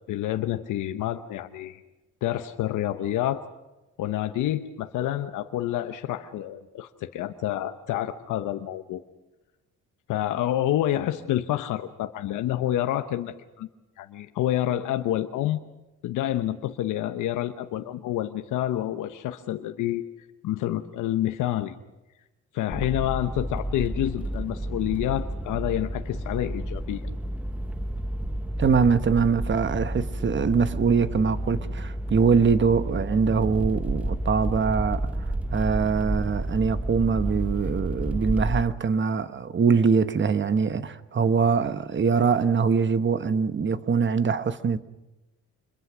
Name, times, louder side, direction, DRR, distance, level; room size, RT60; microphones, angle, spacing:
voice 1, 0.1-1.8 2.2-3.4 4.0-9.0 10.1-13.7 14.0-15.6 16.0-20.0 20.4-21.7 22.5-27.1, left 13 dB, 85° left, 1.0 m, -28 dB
car inside driving slow diesel engine, 22.7-38.6, right 1 dB, 5° right, 1.1 m, -30 dB
voice 2, 28.6-35.1 35.5-44.8, right 5 dB, 40° right, 1.2 m, -23 dB
26.5 x 22.0 x 6.2 m
cardioid pair, 90°, 30 cm